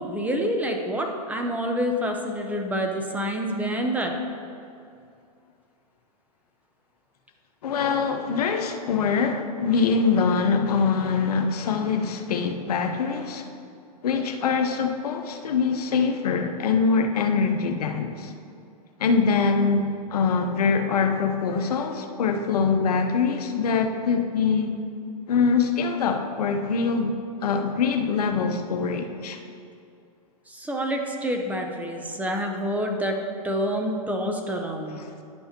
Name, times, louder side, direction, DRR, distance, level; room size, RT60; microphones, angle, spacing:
voice 1, 0.0-4.1 30.5-33.1 33.4-35.0, equal, 10° right, 2 dB, 0.6 m, -27 dB
voice 2, 7.6-13.5 14.0-18.3 19.0-24.7 25.3-27.1 27.4-29.4 35.0-35.1, left 5 dB, 75° left, 6 dB, 0.8 m, -24 dB
10.5 x 5.5 x 2.9 m, 2.4 s
hypercardioid pair, 125°, 20 cm